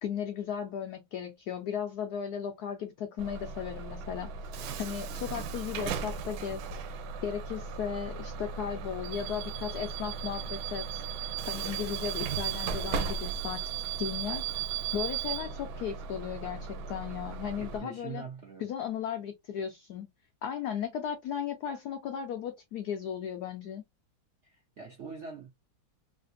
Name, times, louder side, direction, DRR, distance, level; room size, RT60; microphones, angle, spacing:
voice 1, 0.0-4.3 4.8-6.6 7.2-11.0 11.5-13.6 14.0-14.4 14.9-18.2 18.6-20.1 20.4-23.8, left 8 dB, 80° left, 0.8 m, -36 dB
Bus / Alarm, 3.2-17.8, right 6 dB, 85° right, 1.4 m, -36 dB
voice 2, 17.6-18.7 24.4-25.5, right 5 dB, 65° right, 0.7 m, -43 dB
3.3 x 2.5 x 2.5 m
omnidirectional pair, 2.2 m